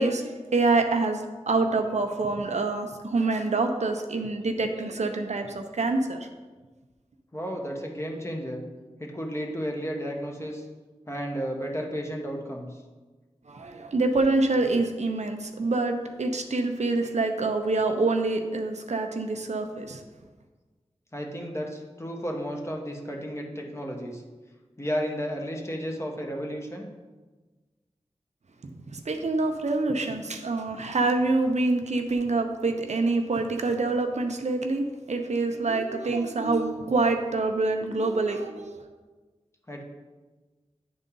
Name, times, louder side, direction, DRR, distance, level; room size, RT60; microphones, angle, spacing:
voice 1, 0.0-6.3 13.5-20.0 28.6-38.8, right 3 dB, 75° right, 5 dB, 0.6 m, -26 dB
voice 2, 7.3-8.6 9.0-10.6 11.1-12.8 21.1-24.2 24.8-26.9 39.7-39.8, equal, 25° left, 0 dB, 1.2 m, -33 dB
9.6 x 3.9 x 3.8 m, 1.3 s
wide cardioid pair, 45°, 12 cm